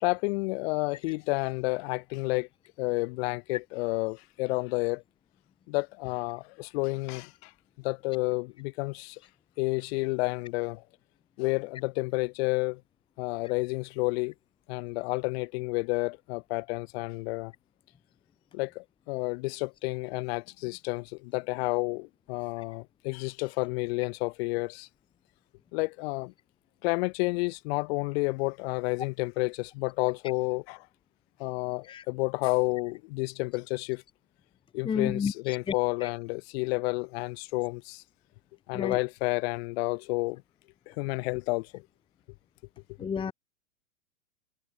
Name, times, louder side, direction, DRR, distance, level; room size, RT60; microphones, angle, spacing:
voice 1, 0.0-2.5 2.8-5.0 5.7-7.5 7.8-9.2 9.6-10.8 11.4-12.8 13.2-14.3 14.7-17.5 18.5-24.9 25.7-26.3 26.8-30.9 31.4-34.0 34.7-38.0 38.7-40.4 40.9-41.8, left 26 dB, 45° left, 2.8 m, -30 dB
voice 2, 34.8-35.3 36.0-36.1 38.7-39.0 43.0-43.3, left 6 dB, 10° left, 1.1 m, -30 dB
hypercardioid pair, 120°, 41 cm